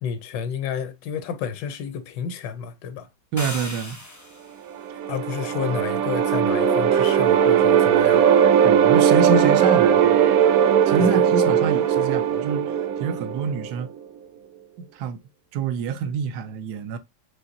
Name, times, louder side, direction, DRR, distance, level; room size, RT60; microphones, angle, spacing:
voice 1, 0.0-3.1 5.1-8.3 11.0-11.2, left 7 dB, 75° left, 1.2 m, -31 dB
voice 2, 3.3-4.0 8.6-10.2 10.9-13.9 14.8-15.2 15.5-17.0, right 5 dB, 70° right, 1.1 m, -26 dB
sound 1, 3.4-4.6, left 2 dB, 25° left, 0.3 m, -36 dB
sound 2, 4.7-13.8, right 9 dB, 85° right, 0.8 m, -19 dB
Wind instrument woodwind instrument, 5.6-8.8 9.2-12.6, right 4 dB, 45° right, 0.6 m, -29 dB
5.7 x 3.2 x 2.5 m
omnidirectional pair, 2.1 m